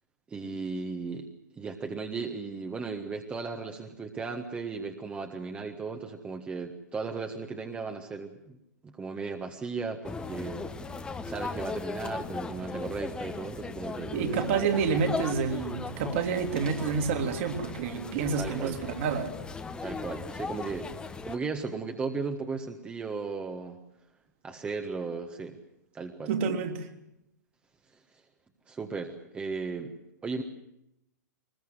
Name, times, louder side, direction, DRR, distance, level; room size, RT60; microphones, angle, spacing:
voice 1, 0.3-1.3 1.5-8.6 8.8-10.6 11.2-14.4 18.4-18.8 19.8-20.9 21.2-23.8 24.4-25.6 25.9-26.3 27.9-28.2 28.7-29.9 30.2-30.4, right 4 dB, 10° right, 4 dB, 1.5 m, -36 dB
sound 1, 10.0-21.4, left 4 dB, 10° left, 1.2 m, -37 dB
voice 2, 14.1-19.3 26.3-26.9, right 6 dB, 40° right, 5 dB, 2.8 m, -29 dB
22.5 x 20.5 x 8.0 m, 0.81 s
figure-of-eight pair, 110°, 10 cm